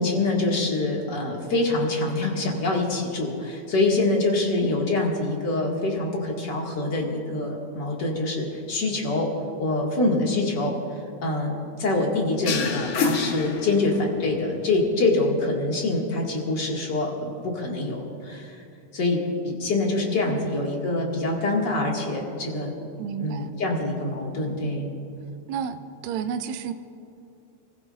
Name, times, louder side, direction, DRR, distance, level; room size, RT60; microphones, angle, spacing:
voice 1, 0.0-9.3 9.6-10.7 11.2-18.6 18.9-22.7 23.2-24.9, left 2 dB, 40° left, -2 dB, 2.5 m, -25 dB
sound 1, 12.5-14.2, left 5 dB, 60° left, 1.4 m, -27 dB
voice 2, 23.0-23.5 25.5-26.7, right 7 dB, 80° right, 8 dB, 1.8 m, -32 dB
28.5 x 15.5 x 2.6 m, 2.7 s
omnidirectional pair, 3.4 m